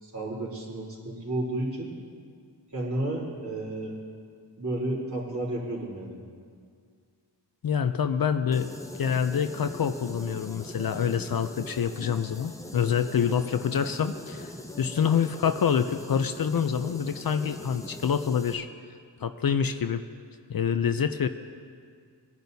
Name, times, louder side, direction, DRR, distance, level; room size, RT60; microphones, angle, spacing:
voice 1, 0.0-1.9 2.7-3.9 4.6-6.2, right 1 dB, 40° right, -6 dB, 3.6 m, -32 dB
voice 2, 7.6-8.7 9.0-18.7 19.2-20.0 20.5-21.3, left 7 dB, 55° left, 9 dB, 0.5 m, -26 dB
sound 1, 8.5-18.5, left 1 dB, 5° left, 0.7 m, -41 dB
19.5 x 10.5 x 2.7 m, 2.1 s
wide cardioid pair, 70°, 43 cm